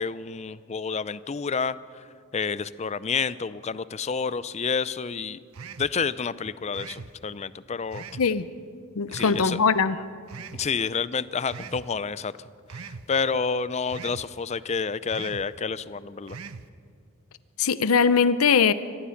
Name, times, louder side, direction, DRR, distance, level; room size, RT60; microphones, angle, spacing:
voice 1, 0.0-2.0 2.3-5.4 5.8-8.0 9.1-9.6 10.6-12.3 13.1-16.4, left 5 dB, 30° left, 17 dB, 0.5 m, -29 dB
sound 1, 5.5-6.0 6.7-7.1 7.9-8.3 9.1-9.5 10.3-10.7 11.5-11.9 12.7-13.1 13.9-14.3 15.1-15.5 16.3-16.7, right 5 dB, 85° right, 0.8 m, -40 dB
voice 2, 9.0-10.0 17.6-18.7, left 5 dB, 85° left, 14 dB, 0.6 m, -21 dB
24.5 x 18.5 x 5.8 m, 2.3 s
head